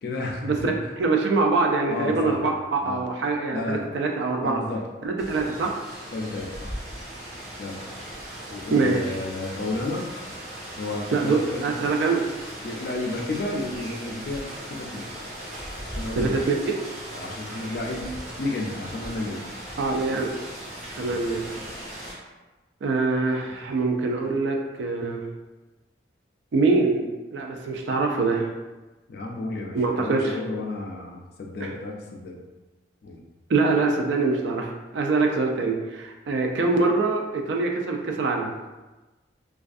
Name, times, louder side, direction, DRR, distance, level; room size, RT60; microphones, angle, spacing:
voice 1, 0.0-0.9 1.9-2.4 2.8-3.0 3.5-3.8 4.4-4.8 6.1-6.7 7.6-7.8 8.5-10.1 10.8-11.7 12.6-15.1 15.8-16.5 17.1-19.5 21.0-21.3 21.5-21.7 29.1-32.4 33.0-33.2, left 2 dB, 55° left, 0 dB, 0.3 m, -32 dB
voice 2, 1.0-4.6 5.0-5.7 8.7-9.0 11.1-12.2 16.2-16.6 19.8-20.3 21.0-21.6 22.8-25.2 26.5-27.1 27.3-28.5 29.7-30.4 31.6-31.7 33.5-38.5, right 3 dB, 75° right, 1 dB, 0.4 m, -24 dB
Rain, 5.2-22.1, equal, 35° right, 0.8 m, -38 dB
2.5 x 2.3 x 2.4 m, 1.2 s
head